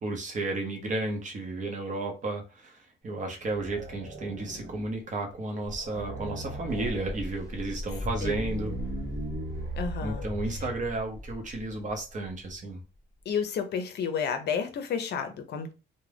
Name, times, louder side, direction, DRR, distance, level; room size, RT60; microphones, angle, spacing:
voice 1, 0.0-8.7 10.0-12.8, right 2 dB, 40° right, 0.8 m, -33 dB
sound 1, 3.4-5.0 5.3-5.4 5.6-7.2 7.8-11.0, right 1 dB, 75° right, 0.9 m, -38 dB
sound 2, 6.7-13.3, left 1 dB, 15° left, 0.7 m, -39 dB
voice 2, 9.8-10.2 13.3-15.7, left 6 dB, 60° left, 0.6 m, -31 dB
2.4 x 2.1 x 3.3 m
cardioid pair, 110°, 19 cm